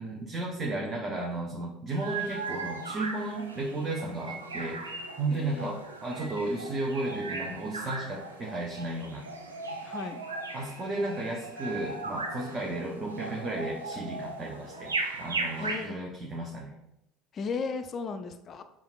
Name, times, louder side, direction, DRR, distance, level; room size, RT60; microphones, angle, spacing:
voice 1, 0.0-9.3 10.5-16.7, right 2 dB, 30° right, -1 dB, 0.7 m, -34 dB
sound 1, 1.9-15.9, right 3 dB, 80° right, 0.4 m, -38 dB
voice 2, 5.3-5.7 9.8-10.3 15.6-16.0 17.3-18.6, left 5 dB, 40° left, 9 dB, 0.4 m, -35 dB
6.7 x 2.4 x 2.3 m, 0.84 s
figure-of-eight pair, 60°, 0 cm